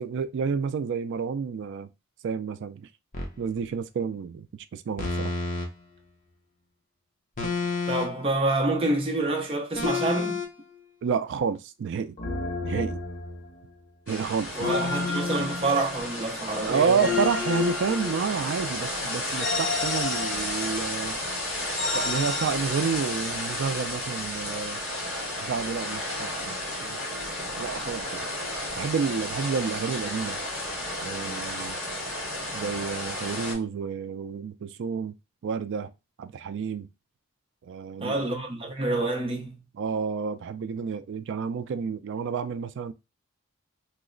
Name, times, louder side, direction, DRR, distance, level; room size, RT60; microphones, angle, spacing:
voice 1, 0.0-1.9 2.2-2.9 3.4-5.3 11.0-12.2 12.6-13.0 14.1-14.8 16.6-21.2 21.9-24.8 25.4-27.0 27.6-28.3 28.8-30.4 31.0-31.8 32.5-35.1 35.4-35.9 36.2-36.9 37.6-38.3 39.7-42.9, right 6 dB, 55° right, 0.3 m, -30 dB
sound 1, 3.1-3.4 5.0-5.7 7.4-8.3 9.8-10.5 12.2-13.6 14.6-16.2 17.0-18.6 19.4-20.9 21.8-22.5, left 4 dB, 40° left, 0.7 m, -30 dB
voice 2, 7.9-10.4 14.5-17.1 38.0-39.6, right 2 dB, 25° right, 0.6 m, -27 dB
sound 2, 14.1-33.5, left 1 dB, 65° left, 1.9 m, -33 dB
3.0 x 2.1 x 3.7 m
head